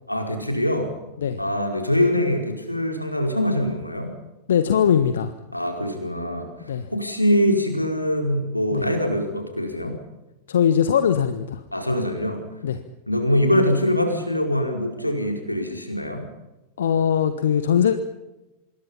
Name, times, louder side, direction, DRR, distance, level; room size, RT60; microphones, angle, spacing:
voice 1, 0.1-0.9 1.4-4.1 5.5-6.5 6.9-10.0 11.7-12.4 13.1-16.3, left 1 dB, 85° left, 3 dB, 5.0 m, -23 dB
voice 2, 4.5-5.3 6.7-6.9 8.7-8.9 10.5-11.6 12.6-12.8 16.8-18.0, left 8 dB, 65° left, 10 dB, 1.4 m, -20 dB
26.5 x 23.0 x 5.7 m, 1.0 s
figure-of-eight pair, 90°, 0 cm